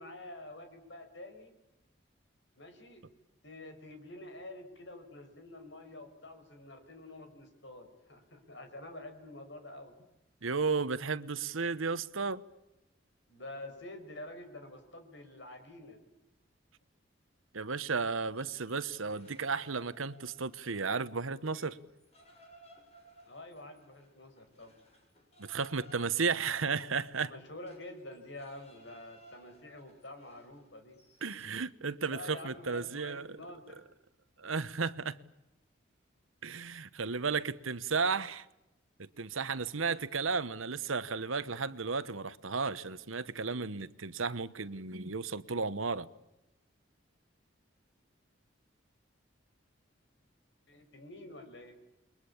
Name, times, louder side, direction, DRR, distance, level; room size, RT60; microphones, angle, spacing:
voice 1, 0.0-1.5 2.6-3.0 3.4-9.9 13.3-16.0 23.3-24.7 27.2-31.0 32.1-33.8 50.7-51.7, left 1 dB, 65° left, 5.4 m, -48 dB
voice 2, 10.4-12.4 17.5-21.8 25.4-27.3 31.2-33.4 34.4-35.2 36.4-38.5 39.0-46.1, right 4 dB, 90° right, 1.1 m, -34 dB
sound 1, 18.3-21.0 21.3-31.6, right 1 dB, 30° left, 6.2 m, -61 dB
29.5 x 22.0 x 8.7 m
head